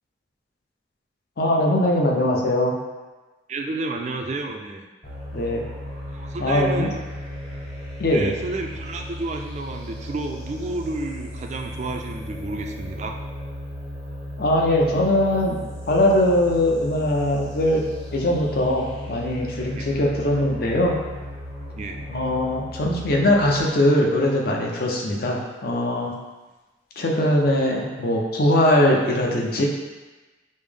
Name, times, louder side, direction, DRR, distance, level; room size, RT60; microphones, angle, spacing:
voice 1, 1.4-2.7 5.3-5.6 6.4-6.9 8.0-8.3 14.4-15.6 15.9-17.8 18.1-21.0 22.1-26.1 27.0-29.7, left 1 dB, 55° left, -1 dB, 0.6 m, -21 dB
voice 2, 3.5-4.8 6.1-7.0 8.1-13.2 19.8-19.9 21.8-22.0, right 2 dB, 40° right, 3 dB, 0.3 m, -31 dB
sound 1, 5.0-23.6, equal, 35° left, 0.9 m, -36 dB
5.3 x 2.0 x 3.3 m, 1.2 s
head